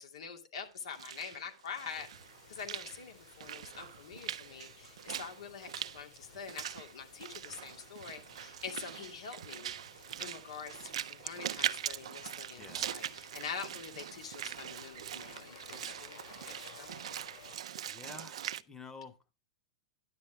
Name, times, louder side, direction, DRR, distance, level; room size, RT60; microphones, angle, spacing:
voice 1, 0.0-2.1 2.5-9.7 10.2-17.0, left 6 dB, 80° left, 2.4 m, -45 dB
Walk footsteps / Splash splatter, 0.8-18.6, right 10 dB, 80° right, 0.5 m, -42 dB
sound 1, 1.9-17.6, left 6 dB, 60° left, 6.1 m, -58 dB
voice 2, 12.6-12.9 17.8-19.3, left 4 dB, 15° left, 1.3 m, -50 dB
10.5 x 8.6 x 3.4 m
hypercardioid pair, 125°, 3 cm